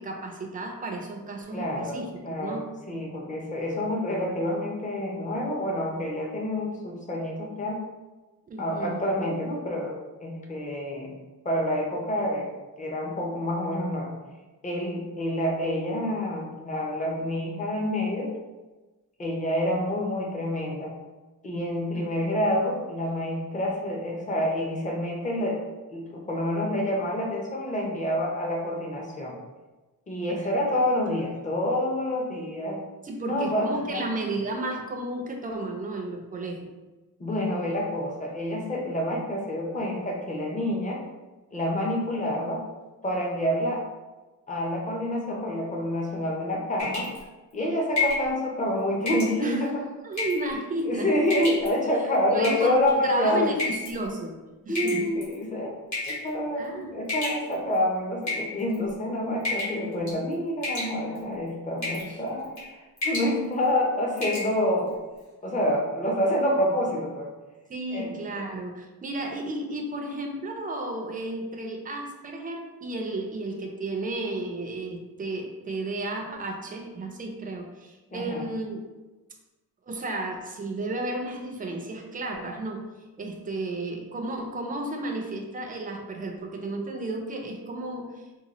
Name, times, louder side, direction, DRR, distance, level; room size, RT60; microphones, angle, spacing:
voice 1, 0.0-2.7 8.5-9.0 21.9-22.3 30.3-30.8 33.0-36.7 49.4-49.7 50.0-51.1 52.3-54.3 54.7-55.1 56.5-56.9 62.1-62.2 67.7-78.8 79.9-82.9 83.2-88.3, right 2 dB, 25° right, 2 dB, 0.4 m, -33 dB
voice 2, 1.5-7.8 8.6-11.1 11.4-12.5 12.8-14.1 14.6-18.3 19.2-21.0 21.4-25.6 25.9-29.4 30.1-32.8 33.2-34.1 37.2-41.0 41.5-42.6 43.0-43.8 44.5-47.1 47.5-49.9 50.8-53.5 54.7-55.7 56.1-64.9 65.4-67.3 67.9-68.4 78.1-78.5, left 1 dB, 20° left, -1 dB, 0.6 m, -28 dB
sound 1, 46.8-47.2 48.0-48.3 49.1-49.3 50.1-50.5 51.3-51.7 52.4-52.9 53.6-53.9 54.8-55.3 55.9-56.3 57.1-57.7 58.2-58.9 59.4-59.8 60.1-60.3 60.6-61.2 61.8-62.1 62.4-62.7 63.0-63.3 63.7-63.8 64.2-64.5, left 3 dB, 55° left, 1.4 m, -30 dB
3.8 x 2.3 x 2.9 m, 1.2 s
wide cardioid pair, 170°, 34 cm